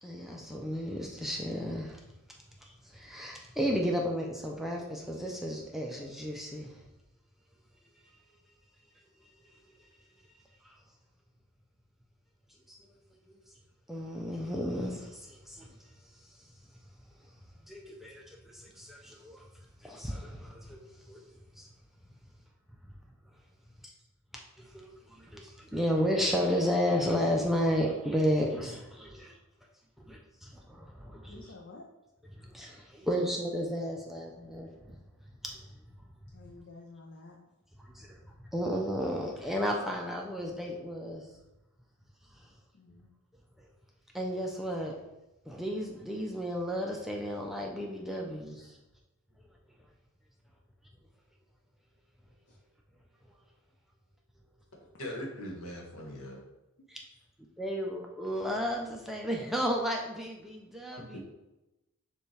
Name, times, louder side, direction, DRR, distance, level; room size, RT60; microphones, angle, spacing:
voice 1, 0.0-2.0 2.6-6.8 10.6-10.8 12.7-12.8 13.9-15.7 16.4-16.5 17.7-19.4 19.8-20.8 21.1-21.2 21.6-21.7 24.3-29.3 30.1-31.5 32.4-35.0 35.4-35.6 37.9-38.2 38.5-41.3 44.1-44.9 45.5-48.8 56.9-57.0 57.6-61.2, equal, ahead, -1 dB, 0.3 m, -33 dB
voice 2, 31.3-31.9 36.3-37.4 42.7-43.1 52.5-52.6 57.1-57.2, left 3 dB, 55° left, -1 dB, 0.5 m, -50 dB
voice 3, 55.0-56.4 61.1-61.2, left 1 dB, 70° left, -1 dB, 1.1 m, -40 dB
6.6 x 2.3 x 3.2 m, 0.97 s
head